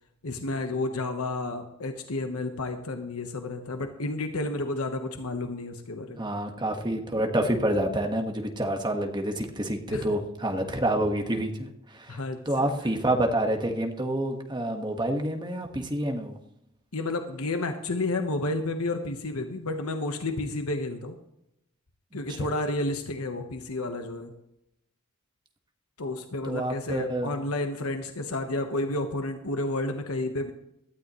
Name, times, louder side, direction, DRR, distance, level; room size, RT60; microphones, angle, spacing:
voice 1, 0.2-6.3 9.9-10.0 12.1-12.7 16.9-21.2 22.1-24.3 26.0-30.5, left 2 dB, 85° left, 6 dB, 1.2 m, -31 dB
voice 2, 6.2-12.2 12.4-16.4 22.3-22.5 26.4-27.4, right 1 dB, 20° right, 4 dB, 1.5 m, -28 dB
17.5 x 12.5 x 3.1 m, 0.82 s
head